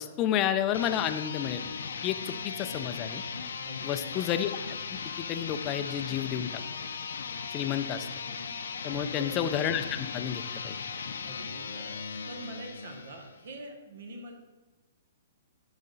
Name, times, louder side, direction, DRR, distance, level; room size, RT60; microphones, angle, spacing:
voice 1, 0.0-1.6 2.0-3.2 3.8-4.5 4.9-6.5 7.5-8.1 8.8-10.8, left 10 dB, 25° left, 9 dB, 0.4 m, -31 dB
sound 1, 0.6-13.4, left 5 dB, 90° left, 0.6 m, -38 dB
voice 2, 3.6-4.4 9.2-9.5 11.2-14.3, right 2 dB, 70° right, 4 dB, 1.3 m, -45 dB
10.5 x 4.1 x 3.9 m, 1.2 s
hypercardioid pair, 155°, 0 cm